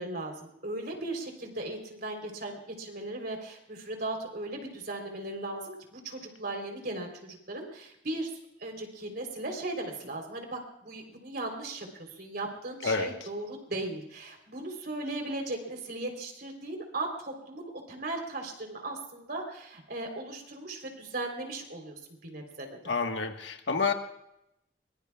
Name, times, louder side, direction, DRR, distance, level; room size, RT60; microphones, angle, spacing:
voice 1, 0.0-8.3 8.6-22.9, right 2 dB, 60° right, 3 dB, 3.7 m, -37 dB
voice 2, 22.8-23.9, left 4 dB, 85° left, 5 dB, 1.5 m, -28 dB
23.5 x 21.5 x 2.4 m, 0.81 s
head